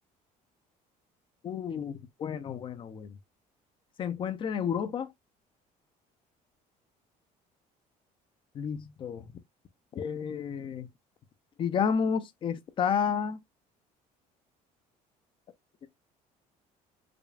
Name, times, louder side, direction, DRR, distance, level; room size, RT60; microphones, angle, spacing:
voice 1, 1.4-3.2 4.0-5.1 8.5-9.3 9.9-10.9 11.6-13.4, left 7 dB, 35° left, 0.4 m, -31 dB
4.9 x 2.3 x 2.3 m
cardioid pair, 145°, 15 cm